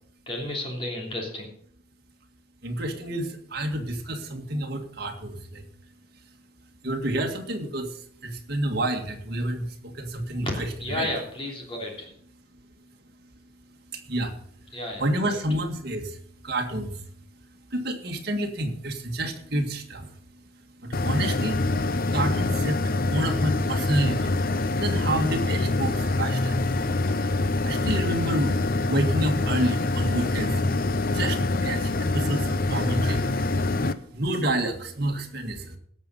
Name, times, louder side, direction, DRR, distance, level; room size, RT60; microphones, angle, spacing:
voice 1, 0.3-1.5 10.4-10.5 10.8-12.1 14.7-15.4, left 1 dB, 25° left, 0 dB, 3.2 m, -32 dB
voice 2, 2.6-5.6 6.8-7.9 8.2-11.1 14.1-14.3 15.0-16.2 16.4-17.0 17.7-20.1 20.8-21.6 22.1-24.4 24.8-26.7 27.6-28.6 28.9-30.6 31.1-33.5 34.1-35.8, right 1 dB, 50° right, 3 dB, 1.9 m, -29 dB
sound 1, 20.9-33.9, left 2 dB, 45° left, 0.6 m, -25 dB
17.5 x 6.9 x 5.5 m, 0.63 s
head